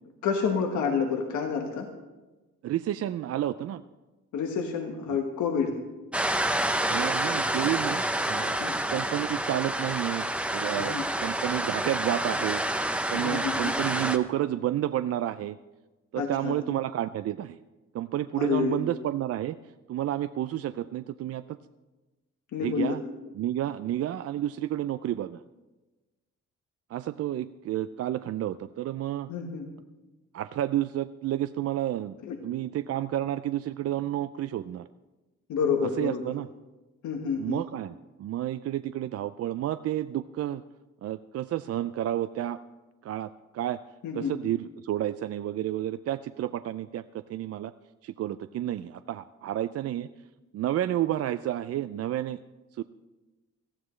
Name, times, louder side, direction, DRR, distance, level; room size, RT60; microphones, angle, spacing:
voice 1, 0.2-1.9 4.3-5.8 8.6-8.8 10.8-11.1 13.1-13.7 16.2-16.5 18.4-18.8 22.5-23.0 29.3-29.7 32.2-32.4 35.5-36.3 37.0-37.6 44.0-44.3, left 6 dB, 75° left, 3 dB, 1.4 m, -29 dB
voice 2, 2.6-3.8 5.1-5.2 6.9-8.6 8.9-10.3 10.5-12.6 13.1-15.6 16.1-17.6 17.9-19.6 19.9-21.6 22.6-23.0 23.4-25.4 26.9-29.3 30.3-32.2 32.4-34.9 35.8-36.5 37.4-40.6 41.0-42.6 43.0-43.8 44.1-47.7 48.0-50.1 50.5-52.4 52.7-52.8, right 12 dB, 55° right, 12 dB, 0.4 m, -30 dB
sound 1, 6.1-14.2, right 1 dB, 5° right, 0.9 m, -28 dB
18.0 x 13.0 x 3.2 m, 1.1 s
cardioid pair, 90°, 30 cm